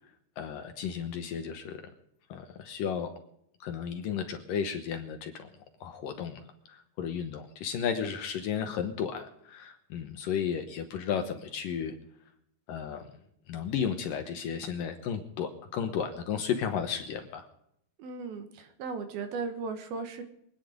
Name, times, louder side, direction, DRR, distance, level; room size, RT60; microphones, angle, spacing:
voice 1, 0.4-1.8 2.3-3.1 3.6-5.3 5.8-6.4 6.7-11.9 12.7-13.0 13.5-17.5, left 7 dB, 70° left, 6 dB, 2.4 m, -33 dB
voice 2, 18.0-20.2, right 4 dB, 70° right, 7 dB, 3.1 m, -36 dB
25.0 x 10.0 x 5.1 m, 0.75 s
omnidirectional pair, 4.8 m